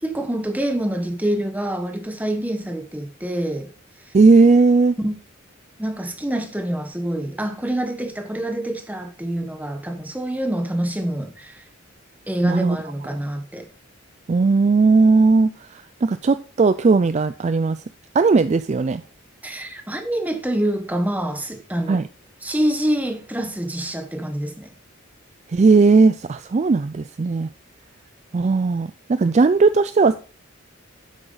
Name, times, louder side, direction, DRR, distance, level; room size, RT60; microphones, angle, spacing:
voice 1, 0.0-3.7 5.0-5.1 5.8-11.6 12.3-13.7 19.4-22.0 22.4-24.7, right 1 dB, 10° right, 1.1 m, -26 dB
voice 2, 4.1-5.0 12.4-12.8 14.3-17.8 18.1-19.0 21.9-22.1 25.5-27.5 28.3-30.2, right 4 dB, 35° right, 0.3 m, -17 dB
9.0 x 7.8 x 3.9 m
head